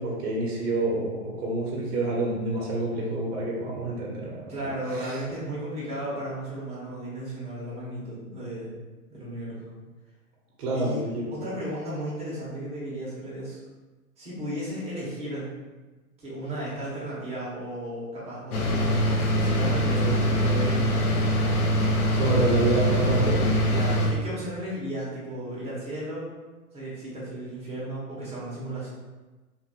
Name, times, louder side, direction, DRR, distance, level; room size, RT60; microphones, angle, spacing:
voice 1, 0.0-5.2 10.6-11.4 20.0-20.2 21.7-23.5, right 2 dB, 45° right, -3 dB, 0.9 m, -28 dB
voice 2, 4.5-8.7 9.1-9.7 10.7-13.6 14.2-15.5 16.2-20.1 20.4-21.1 23.7-26.3 26.7-28.9, right 1 dB, 15° right, -7 dB, 0.9 m, -34 dB
sound 1, 18.5-24.1, equal, 70° left, 0.8 m, -23 dB
2.8 x 2.6 x 2.8 m, 1.2 s
hypercardioid pair, 115°, 45 cm